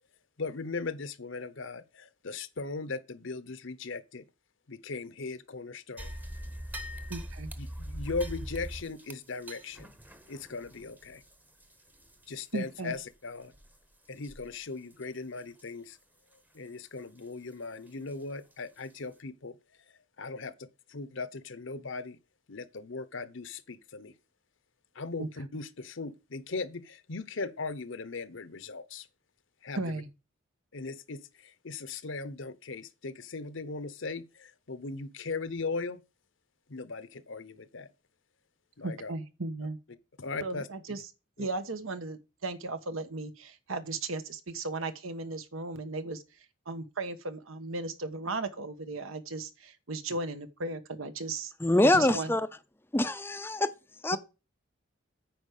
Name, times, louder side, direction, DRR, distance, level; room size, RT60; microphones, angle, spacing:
voice 1, 0.4-4.2 4.7-6.1 7.6-9.9 10.3-11.2 12.3-13.5 14.1-16.0 16.5-19.6 20.2-22.2 22.5-24.1 24.9-29.1 29.6-30.0 30.7-36.0 36.7-37.9 38.8-39.1 40.2-40.7 41.4-41.5, left 3 dB, 65° left, 0.9 m, -38 dB
sound 1, 6.0-12.6 12.9-13.0 13.5-13.8 14.2-14.6 14.9-15.0 15.6-15.7 18.1-18.2 18.8-18.9, equal, 10° right, 0.8 m, -42 dB
voice 2, 7.1-7.5 12.5-12.9 25.2-25.3 29.8-30.1 38.8-39.8 40.4-41.0 41.4-46.2 46.7-51.5 51.8-52.3 54.1-54.2, right 3 dB, 85° right, 1.2 m, -36 dB
voice 3, 51.6-52.5 52.9-53.7 54.0-54.2, left 1 dB, 10° left, 0.5 m, -24 dB
9.4 x 4.7 x 6.6 m
head